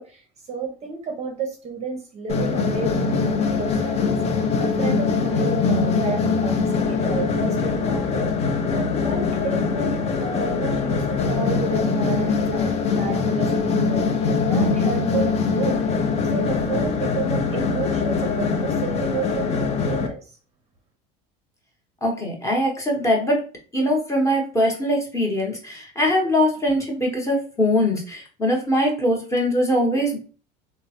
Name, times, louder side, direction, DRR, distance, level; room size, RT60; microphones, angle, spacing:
voice 1, 0.0-15.8 16.3-20.3, right 4 dB, 30° right, 3 dB, 0.6 m, -31 dB
sound 1, 2.3-20.1, left 4 dB, 30° left, 0.4 m, -22 dB
voice 2, 22.0-23.4 23.7-30.2, equal, 15° left, -1 dB, 0.9 m, -22 dB
3.1 x 2.0 x 2.8 m, 0.38 s
supercardioid pair, 115°, 21 cm